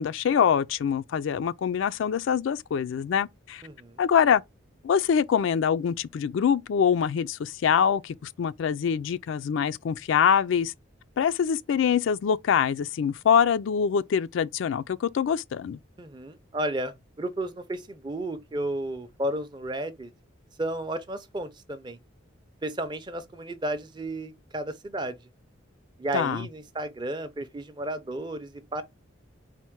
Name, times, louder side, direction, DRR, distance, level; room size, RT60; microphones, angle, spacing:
voice 1, 0.0-3.6 4.0-4.4 4.8-10.7 11.2-15.8 26.1-26.5, left 7 dB, 70° left, 0.3 m, -24 dB
voice 2, 3.6-4.0 16.0-20.1 20.6-22.0 22.6-25.2 26.0-28.8, right 1 dB, 20° right, 0.5 m, -33 dB
4.3 x 2.1 x 4.5 m
head